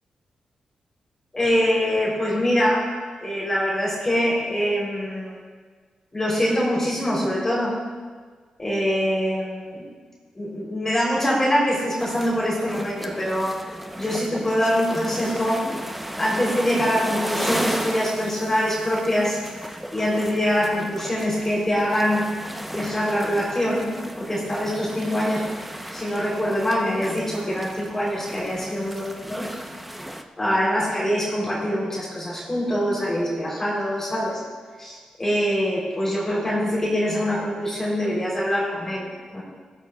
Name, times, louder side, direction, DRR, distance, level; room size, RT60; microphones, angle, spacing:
voice 1, 1.3-2.9 3.2-5.4 6.1-7.8 8.6-9.8 10.4-13.6 14.0-15.7 16.2-19.4 19.9-22.2 22.7-25.4 25.9-29.5 30.4-34.4 34.8-39.4, equal, 20° left, -5 dB, 3.7 m, -24 dB
sound 1, 12.0-30.2, equal, 5° right, 0.9 m, -34 dB
20.0 x 14.5 x 2.5 m, 1.5 s
cardioid pair, 100°, 2 cm